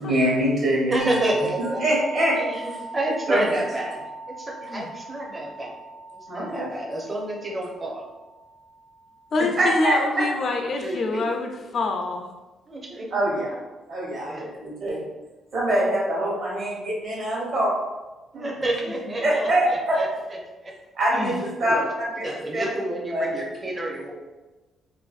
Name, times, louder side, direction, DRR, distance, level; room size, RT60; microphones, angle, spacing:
voice 1, 0.0-1.1 1.8-2.4 3.3-3.4 6.3-6.7 9.6-10.2 13.1-13.5 13.9-15.0 15.5-17.7 18.3-18.5 19.2-19.9 21.0-21.3 21.6-22.2 22.5-22.7 23.1-23.3, right 1 dB, 55° right, -4 dB, 1.0 m, -24 dB
voice 2, 0.9-1.8 2.4-4.1 4.4-5.7 6.3-8.0 10.7-11.3 12.7-13.1 14.2-14.4 18.3-20.4 21.0-24.1, right 1 dB, 30° right, -1 dB, 0.5 m, -30 dB
sound 1, 1.0-10.4, right 2 dB, 90° right, 1.3 m, -40 dB
voice 3, 9.3-12.3 21.2-21.4, left 3 dB, 55° left, 3 dB, 0.3 m, -26 dB
2.5 x 2.5 x 2.4 m, 1.2 s
cardioid pair, 90°, 0 cm